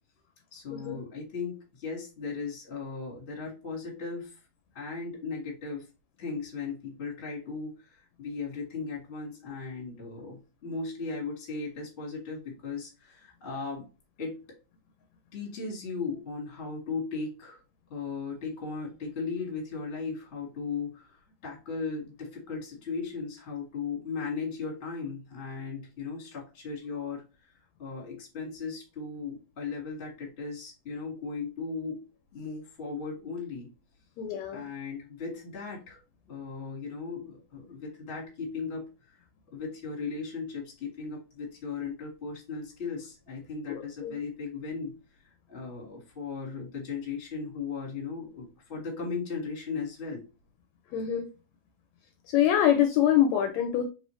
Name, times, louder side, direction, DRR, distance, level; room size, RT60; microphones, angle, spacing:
voice 1, 0.5-4.4 4.7-5.9 6.2-13.9 14.2-14.4 15.3-17.6 17.9-27.5 27.8-32.1 32.3-33.7 34.5-36.0 36.3-39.2 39.5-44.9 45.5-50.2, left 4 dB, 30° left, -1 dB, 1.4 m, -37 dB
voice 2, 34.2-34.6 43.7-44.1 50.9-51.3 52.3-53.8, left 10 dB, 80° left, 5 dB, 1.7 m, -25 dB
4.0 x 3.4 x 3.1 m, 0.30 s
omnidirectional pair, 3.4 m